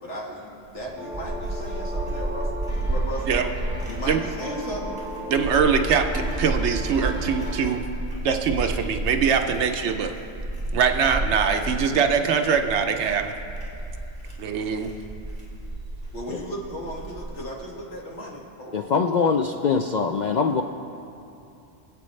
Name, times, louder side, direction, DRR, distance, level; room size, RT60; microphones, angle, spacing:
voice 1, 0.0-3.5 3.7-5.0 16.1-18.9, equal, 80° left, -3 dB, 2.1 m, -36 dB
sound 1, 0.7-17.5, right 2 dB, 35° right, 3.0 m, -31 dB
sound 2, 1.0-7.8, equal, 5° right, 1.1 m, -36 dB
voice 2, 5.3-7.8 8.2-10.2 10.7-13.3 14.4-14.9, right 6 dB, 75° right, 6 dB, 0.9 m, -23 dB
voice 3, 18.7-20.6, left 5 dB, 60° left, 4 dB, 0.5 m, -23 dB
24.0 x 8.4 x 3.2 m, 2.7 s
omnidirectional pair, 1.2 m